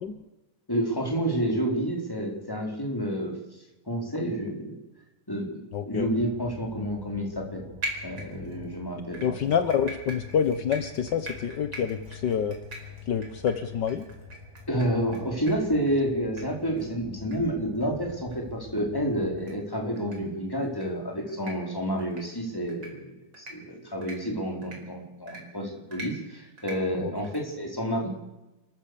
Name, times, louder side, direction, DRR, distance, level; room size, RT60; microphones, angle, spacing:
voice 1, 0.7-3.4 3.9-4.7 5.3-7.7 8.0-9.2 14.7-28.1, equal, 5° left, 1 dB, 4.3 m, -29 dB
voice 2, 5.7-6.1 9.2-12.6 13.1-14.1 27.0-27.1, left 7 dB, 65° left, 10 dB, 1.0 m, -27 dB
sound 1, 5.9-19.5, left 6 dB, 10° right, 2.7 m, -46 dB
sound 2, 7.8-8.6 9.1-15.2 15.5-15.6 15.9-16.0 16.4-16.5 16.8-16.9 17.3-17.4 17.7-17.8 18.3-18.4 19.4-19.5 20.0-20.2 20.6-20.9 21.3-21.5 22.0-22.2 22.7-22.9 23.3-23.5 24.0-24.1 24.6-24.8 25.3-25.4 25.9-26.1 26.6-26.8 27.2-27.4, right 1 dB, 40° right, 5.3 m, -39 dB
28.5 x 14.5 x 6.9 m, 1.0 s
omnidirectional pair, 3.4 m